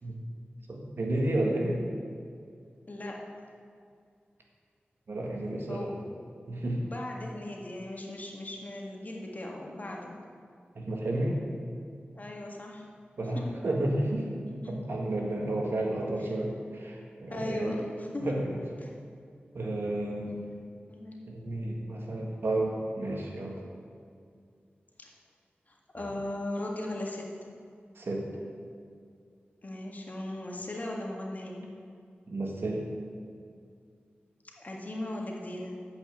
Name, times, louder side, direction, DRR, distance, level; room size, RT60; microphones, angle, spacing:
voice 1, 0.7-1.8 5.1-5.9 6.5-6.8 10.7-11.4 13.2-14.3 14.7-17.8 18.2-18.6 19.5-20.4 21.3-23.6 26.0-26.1 27.9-28.3 32.3-32.8, right 1 dB, 75° right, -1 dB, 1.7 m, -31 dB
voice 2, 2.9-3.2 5.7-6.1 6.8-10.2 12.1-12.8 13.3-13.5 14.6-14.7 17.3-18.3 18.8-18.9 20.3-20.4 20.9-21.2 25.0-25.1 25.9-27.3 29.6-31.7 34.6-35.9, left 1 dB, 45° left, -1 dB, 1.8 m, -38 dB
8.4 x 5.7 x 7.9 m, 2.3 s
cardioid pair, 55°, 4 cm